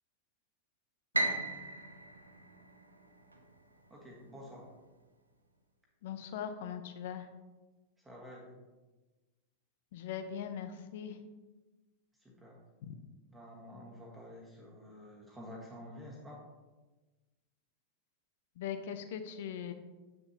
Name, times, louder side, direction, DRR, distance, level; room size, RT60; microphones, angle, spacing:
Piano, 1.1-3.4, right 2 dB, 80° right, 0.7 m, -35 dB
voice 1, 3.9-4.7 8.0-8.6 12.2-12.6 13.3-16.4, left 1 dB, 10° right, -3 dB, 1.5 m, -50 dB
voice 2, 6.0-7.3 9.9-11.2 12.8-12.9 18.6-19.7, left 8 dB, 55° left, 9 dB, 0.6 m, -40 dB
7.7 x 6.6 x 2.8 m, 1.2 s
figure-of-eight pair, 90°, 0 cm